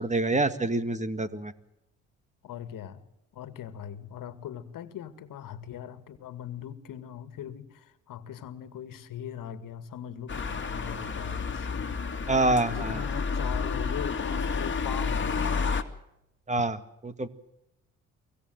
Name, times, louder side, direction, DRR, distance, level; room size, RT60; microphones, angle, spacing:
voice 1, 0.0-1.5 12.3-13.0 16.5-16.8 17.0-17.3, right 2 dB, 20° right, 12 dB, 1.9 m, -26 dB
voice 2, 2.4-3.0 3.3-12.0 12.7-15.6, left 10 dB, 65° left, 12 dB, 2.1 m, -40 dB
sound 1, 10.3-15.8, left 5 dB, 30° left, 2.4 m, -30 dB
24.5 x 16.0 x 7.7 m, 0.84 s
hypercardioid pair, 55°, 36 cm